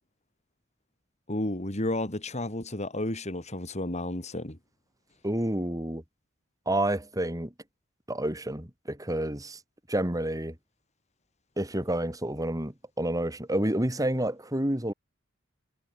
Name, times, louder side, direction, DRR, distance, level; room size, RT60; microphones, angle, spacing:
voice 1, 1.3-4.6, left 1 dB, 35° left, 3.2 m, -32 dB
voice 2, 5.2-6.0 6.7-7.5 8.1-9.6 9.9-10.6 11.6-14.9, right 1 dB, 20° right, 3.7 m, -29 dB
head